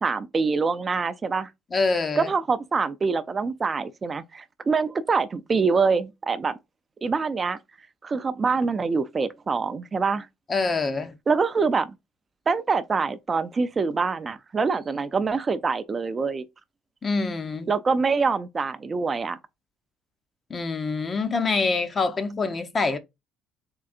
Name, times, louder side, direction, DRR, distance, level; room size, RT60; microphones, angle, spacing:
voice 1, 0.0-1.5 2.2-6.5 7.0-7.6 8.0-10.3 11.3-11.9 12.5-16.4 17.7-19.4, right 4 dB, 30° right, 0.4 m, -25 dB
voice 2, 1.7-2.3 10.5-11.1 17.0-17.7 20.5-23.0, left 4 dB, 30° left, 0.6 m, -25 dB
3.7 x 3.3 x 2.4 m
cardioid pair, 100°, 0 cm